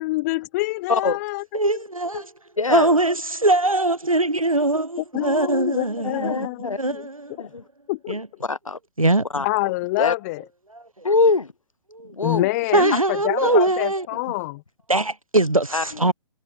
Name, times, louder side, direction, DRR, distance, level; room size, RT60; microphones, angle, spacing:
voice 1, 0.0-1.7 5.1-7.1 7.4-7.5 7.9-8.2 9.4-10.4 12.2-14.6, left 21 dB, 30° left, 1.9 m, -26 dB
voice 2, 1.5-2.3 2.7-6.5 6.8-7.3 8.1-8.3 9.0-9.3 11.9-12.1 12.7-14.1 14.9-16.1, right 2 dB, 85° right, 1.4 m, -21 dB
voice 3, 2.6-2.9 5.2-5.5 6.1-6.8 7.4-7.6 8.4-8.8 9.3-9.4 10.0-10.1 11.0-11.5 12.1-12.9 13.4-13.6 15.7-16.1, left 3 dB, 80° left, 1.1 m, -24 dB
figure-of-eight pair, 125°, 17 cm